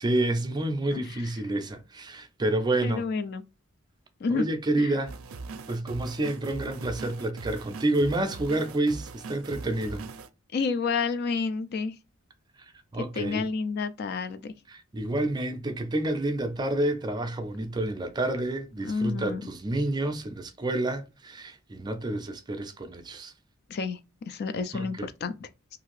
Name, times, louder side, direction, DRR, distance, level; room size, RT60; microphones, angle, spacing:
voice 1, 0.0-3.1 4.3-5.1 5.7-10.0 12.9-13.5 14.7-23.3 24.7-25.1, right 1 dB, 20° right, 0.4 m, -29 dB
voice 2, 0.9-1.2 2.8-3.4 4.2-4.4 4.8-4.9 10.5-11.9 13.0-14.5 18.8-19.5 23.7-24.0 24.3-25.5, left 4 dB, 50° left, 0.3 m, -30 dB
sound 1, 5.1-10.3, right 4 dB, 75° right, 0.4 m, -41 dB
2.8 x 2.5 x 3.0 m
head